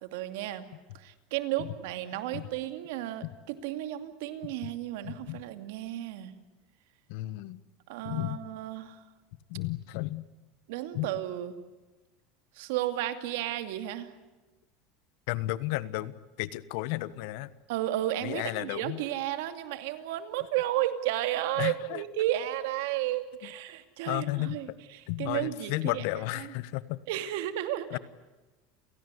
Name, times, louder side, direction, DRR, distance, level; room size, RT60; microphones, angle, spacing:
voice 1, 0.0-0.7 1.0-6.3 7.9-9.0 10.7-11.5 12.6-14.1 17.7-26.0 26.4-26.5 27.1-28.0, right 13 dB, 75° right, 9 dB, 2.5 m, -33 dB
voice 2, 5.0-5.4 7.1-7.6 8.0-8.4 9.5-10.3 10.9-11.1 15.3-16.1 16.4-17.5 18.2-19.0 21.6-22.0 24.1-24.6 25.1-27.0 27.9-28.0, left 18 dB, 70° left, 17 dB, 1.3 m, -33 dB
29.5 x 17.5 x 9.8 m, 1.2 s
supercardioid pair, 120°, 0 cm